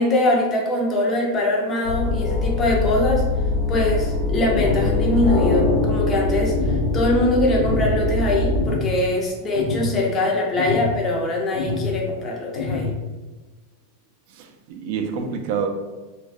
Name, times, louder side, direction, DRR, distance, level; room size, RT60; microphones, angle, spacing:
voice 1, 0.0-3.2 3.7-12.9, left 1 dB, 25° left, -2 dB, 0.5 m, -22 dB
sound 1, 1.8-8.7, left 2 dB, 65° left, 0.8 m, -23 dB
sound 2, 4.5-5.0 5.5-6.0 6.5-7.0 7.5-7.9 8.5-9.0 9.5-9.9 10.6-11.0 11.5-12.0 12.5-13.0, left 4 dB, 85° left, 0.4 m, -26 dB
voice 2, 14.3-15.7, right 6 dB, 55° right, 3 dB, 0.3 m, -27 dB
2.2 x 2.2 x 2.5 m, 1.2 s
supercardioid pair, 150°, 0 cm